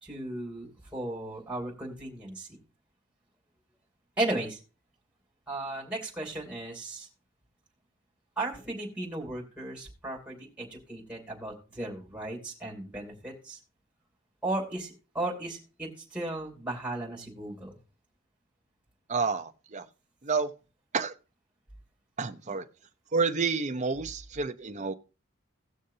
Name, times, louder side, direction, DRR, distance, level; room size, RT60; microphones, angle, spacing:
voice 1, 0.0-2.5 4.2-4.6 5.5-7.1 8.4-13.6 14.4-17.7, right 2 dB, 5° right, 2.9 m, -35 dB
voice 2, 19.1-19.9 20.2-20.5 20.9-21.1 22.2-22.7 23.1-24.9, right 4 dB, 35° right, 0.7 m, -29 dB
18.0 x 6.5 x 2.8 m
head